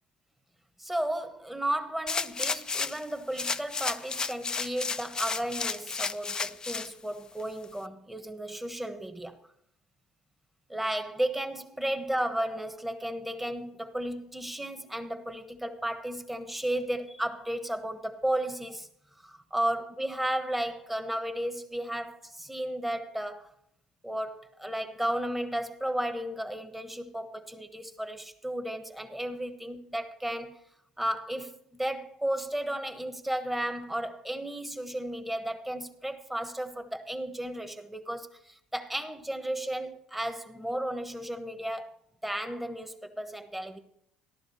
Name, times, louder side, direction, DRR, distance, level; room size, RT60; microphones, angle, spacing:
voice 1, 0.8-9.4 10.7-18.9 19.5-23.5 24.0-30.6 31.0-43.8, right 1 dB, 5° right, 1.2 m, -34 dB
sound 1, 2.1-3.0 3.4-6.9 7.4-7.5, left 4 dB, 25° left, 0.5 m, -32 dB
14.5 x 11.5 x 4.2 m
cardioid pair, 105°, 3 cm